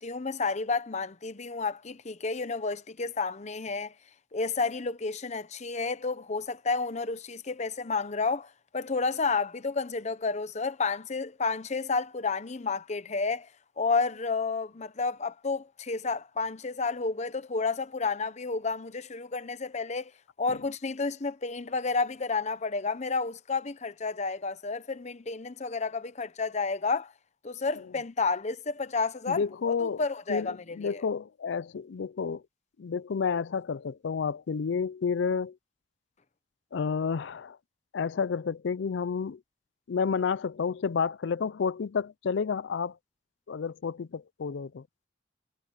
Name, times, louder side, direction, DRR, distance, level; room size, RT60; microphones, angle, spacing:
voice 1, 0.0-3.9 4.3-13.5 13.8-20.1 20.4-27.1 27.4-31.0, left 4 dB, 40° left, 0.8 m, -31 dB
voice 2, 29.3-30.0 30.3-32.4 32.8-35.6 36.7-37.6 37.9-39.4 39.9-43.0 43.5-44.8, left 5 dB, 70° left, 0.4 m, -30 dB
head